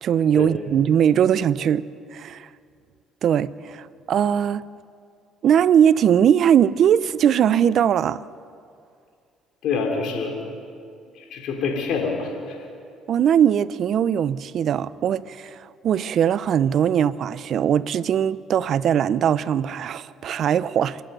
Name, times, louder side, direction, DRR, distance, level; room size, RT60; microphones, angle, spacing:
voice 1, 0.0-1.8 2.1-2.5 3.2-4.6 5.4-8.2 13.1-21.0, right 9 dB, 60° right, 17 dB, 0.6 m, -20 dB
voice 2, 9.6-10.4 11.2-12.6, left 5 dB, 70° left, 1 dB, 3.5 m, -26 dB
26.5 x 11.5 x 9.3 m, 2.3 s
supercardioid pair, 85°, 0 cm